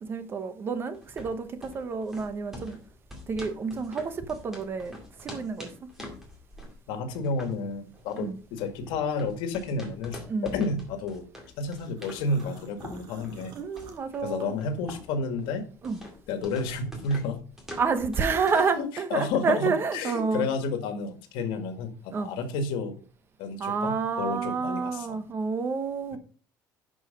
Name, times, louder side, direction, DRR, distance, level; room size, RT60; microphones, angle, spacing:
voice 1, 0.0-2.8 3.3-5.9 8.2-8.4 10.3-10.6 13.5-14.5 15.8-16.0 17.8-20.5 22.1-22.3 23.6-26.2, right 5 dB, 30° right, 0.9 m, -29 dB
sound 1, 0.9-18.7, left 1 dB, 5° right, 2.3 m, -46 dB
voice 2, 6.9-11.2 11.6-13.5 14.2-15.6 16.3-17.4 18.6-22.9 23.4-25.2, left 3 dB, 85° left, 1.9 m, -31 dB
sound 2, 11.7-15.2 15.6-17.1, right 5 dB, 70° right, 1.7 m, -51 dB
11.0 x 4.8 x 5.3 m
cardioid pair, 175°, 8 cm